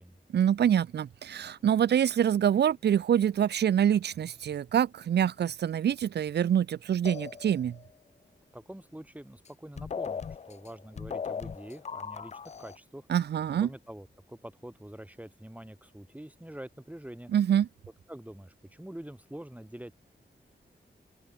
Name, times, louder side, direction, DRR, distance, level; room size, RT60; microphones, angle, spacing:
voice 1, 0.3-7.8 13.1-13.7 17.3-17.7, right 9 dB, 60° right, 0.4 m, -25 dB
sound 1, 7.0-7.9 9.4-9.5 9.8-12.8, left 6 dB, 35° left, 0.4 m, -38 dB
voice 2, 8.5-13.1 13.6-17.3 18.1-19.9, right 1 dB, 10° right, 1.6 m, -45 dB
wide cardioid pair, 95°, 19 cm